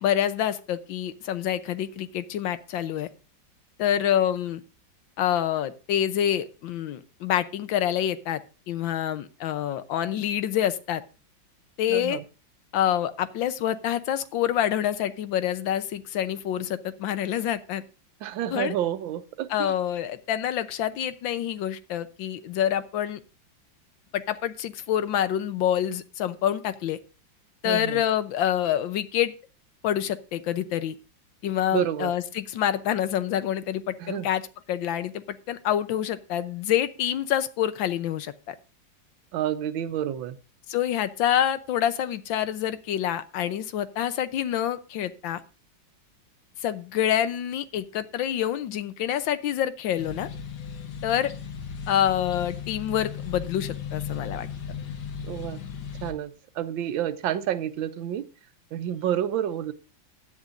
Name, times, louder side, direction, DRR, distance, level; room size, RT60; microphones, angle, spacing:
voice 1, 0.0-3.1 3.8-4.6 5.2-8.4 8.7-11.0 11.8-12.2 12.7-17.8 18.5-18.7 19.5-23.2 24.1-27.0 27.6-29.3 29.8-30.9 31.4-34.4 34.7-38.5 40.7-45.4 46.6-50.3 51.0-51.3 51.9-54.5, left 10 dB, 85° left, 12 dB, 1.5 m, -27 dB
voice 2, 11.9-12.2 18.2-19.7 27.6-28.0 31.7-32.1 34.0-34.2 39.3-40.3 55.2-55.6 56.0-56.3 56.6-58.2 58.7-59.7, right 10 dB, 85° right, 12 dB, 1.5 m, -29 dB
sound 1, 50.0-56.1, left 7 dB, 60° left, 1.6 m, -36 dB
16.0 x 10.5 x 2.6 m, 0.33 s
omnidirectional pair, 2.1 m